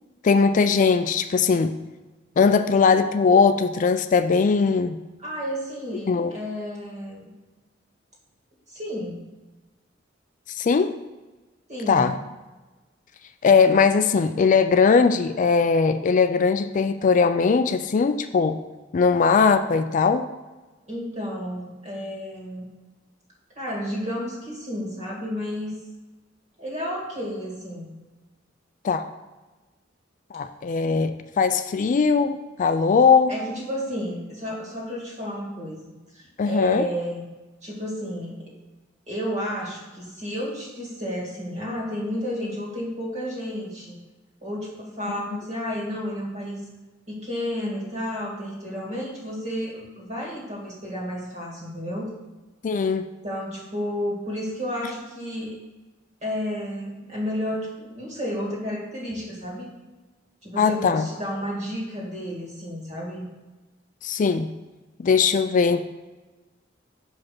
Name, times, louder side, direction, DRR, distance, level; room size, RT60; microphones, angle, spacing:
voice 1, 0.2-1.7 2.4-5.0 6.1-6.3 10.5-10.9 11.9-12.1 13.4-18.6 18.9-20.2 28.8-29.1 30.3-33.3 36.4-36.9 52.6-53.1 60.6-61.1 64.0-64.5 65.0-65.8, left 5 dB, 40° left, 10 dB, 0.4 m, -20 dB
voice 2, 5.2-7.3 8.7-9.2 11.7-12.1 20.9-22.6 23.6-25.8 26.6-27.9 33.3-37.2 37.6-38.5 39.1-44.0 44.4-46.6 47.1-52.1 53.2-55.6 56.2-59.7 60.4-63.3, equal, 40° right, -3 dB, 2.3 m, -31 dB
5.9 x 5.1 x 6.0 m, 1.2 s
head